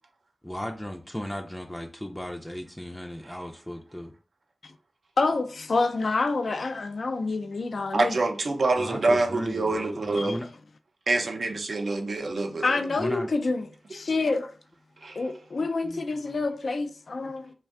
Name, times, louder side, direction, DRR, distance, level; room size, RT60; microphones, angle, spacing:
voice 1, 0.4-4.1 8.8-10.5 12.8-13.3 15.6-16.5, equal, 10° left, 0.4 m, -36 dB
voice 2, 5.2-8.1 10.2-10.4 12.6-13.6 13.9-14.5 15.2-17.5, left 3 dB, 75° left, 0.3 m, -27 dB
voice 3, 7.9-10.3 11.1-12.8 15.0-15.2, right 2 dB, 75° right, 0.5 m, -26 dB
2.5 x 2.2 x 3.5 m
cardioid pair, 40°, 0 cm